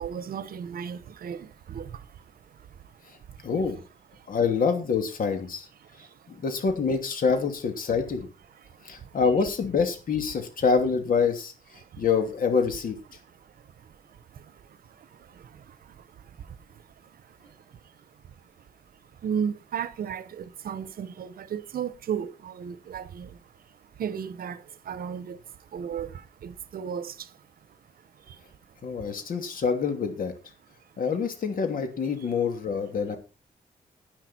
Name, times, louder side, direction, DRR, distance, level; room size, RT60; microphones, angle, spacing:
voice 1, 0.0-3.5 4.1-4.3 5.8-6.4 8.6-9.2 11.8-12.0 13.1-29.3 30.8-31.0 32.2-32.3, right 7 dB, 75° right, 0.9 m, -38 dB
voice 2, 3.4-3.8 4.3-5.7 6.3-8.3 8.8-13.0 28.8-30.3 31.0-33.2, left 5 dB, 65° left, 2.8 m, -26 dB
10.5 x 10.0 x 4.4 m
wide cardioid pair, 125°, 15 cm